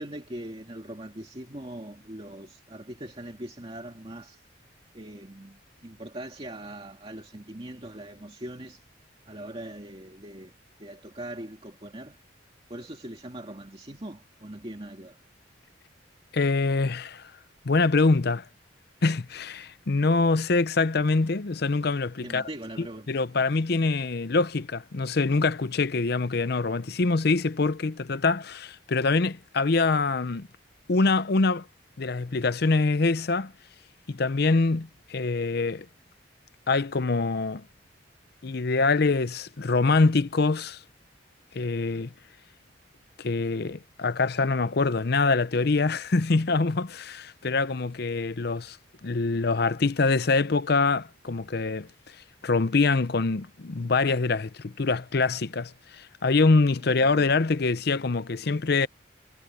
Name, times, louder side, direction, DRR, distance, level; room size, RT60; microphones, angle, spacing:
voice 1, 0.0-4.4 4.9-8.8 9.3-10.5 10.8-12.2 12.7-15.2 22.2-23.2 56.8-57.0, right 1 dB, 30° right, 2.2 m, -41 dB
voice 2, 16.3-17.2 17.6-18.4 19.0-22.4 22.8-30.5 30.9-31.7 32.0-33.5 34.1-35.9 36.7-37.6 38.4-40.8 41.5-42.1 43.2-48.8 49.0-51.9 52.4-58.9, left 3 dB, 55° left, 0.7 m, -24 dB
head